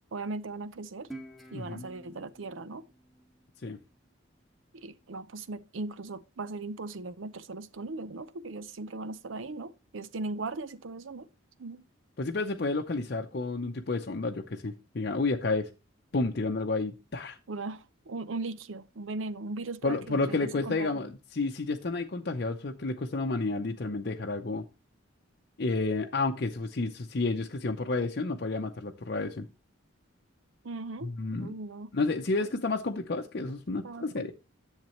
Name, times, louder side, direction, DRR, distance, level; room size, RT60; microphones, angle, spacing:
voice 1, 0.1-1.1 1.5-2.8 4.7-11.3 11.6-11.8 17.5-21.1 30.6-31.9 33.8-34.3, right 3 dB, 75° right, 0.7 m, -38 dB
Guitar, 1.1-4.3, right 1 dB, ahead, 1.2 m, -49 dB
voice 2, 1.5-1.9 3.6-3.8 12.2-15.7 16.1-17.4 19.8-24.6 25.6-29.5 31.0-31.5 31.9-34.3, left 3 dB, 55° left, 0.7 m, -31 dB
10.5 x 7.4 x 3.0 m
head